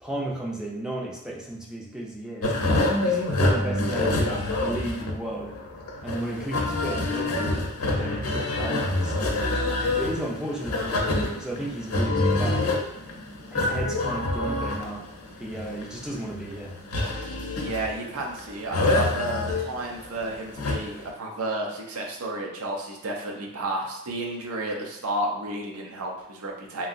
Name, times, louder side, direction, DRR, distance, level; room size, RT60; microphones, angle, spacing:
voice 1, 0.0-2.5 3.0-5.5 6.0-7.6 8.0-9.4 9.9-12.7 13.5-15.0 15.4-16.8, right 1 dB, 5° right, -3 dB, 0.3 m, -34 dB
sound 1, 2.4-21.1, left 2 dB, 85° left, 0.6 m, -26 dB
voice 2, 17.6-26.9, right 1 dB, 85° right, 0 dB, 0.6 m, -32 dB
3.0 x 2.6 x 2.5 m, 0.86 s
head